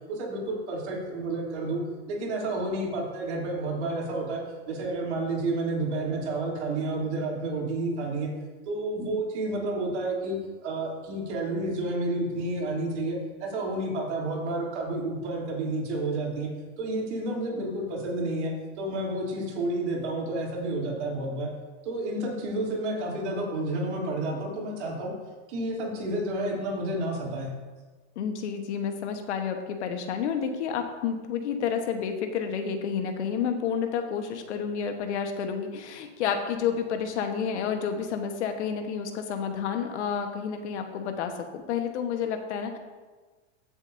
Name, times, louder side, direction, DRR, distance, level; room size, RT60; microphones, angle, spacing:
voice 1, 0.1-1.8 2.1-4.4 4.7-8.3 8.7-16.5 16.8-21.5 21.8-25.1 25.5-27.5, right 2 dB, 75° right, -3 dB, 3.2 m, -30 dB
voice 2, 28.1-42.8, left 7 dB, 75° left, 5 dB, 1.3 m, -30 dB
15.0 x 7.0 x 2.7 m, 1.3 s
supercardioid pair, 135°, 35 cm